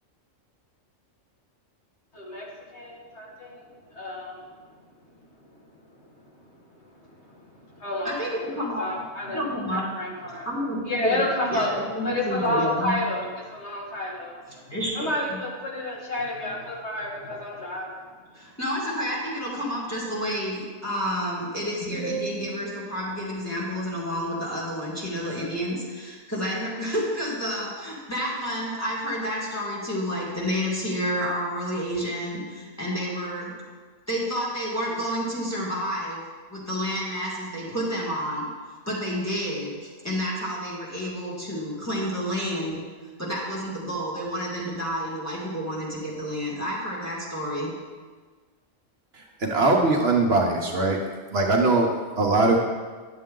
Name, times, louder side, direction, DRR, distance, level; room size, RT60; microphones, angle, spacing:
voice 1, 2.1-4.7 5.0-8.3 8.8-10.5 10.9-11.7 12.0-18.1, left 1 dB, 60° left, -4 dB, 2.0 m, -31 dB
voice 2, 8.0-8.9 9.3-9.9 10.4-13.0 14.7-15.4 18.3-33.6 34.1-36.2 36.5-38.5 38.9-42.9 43.2-47.8, equal, 10° left, -6 dB, 2.4 m, -30 dB
voice 3, 49.4-51.0 51.3-52.6, right 3 dB, 55° right, 1 dB, 1.0 m, -21 dB
10.5 x 7.4 x 3.7 m, 1.4 s
omnidirectional pair, 1.3 m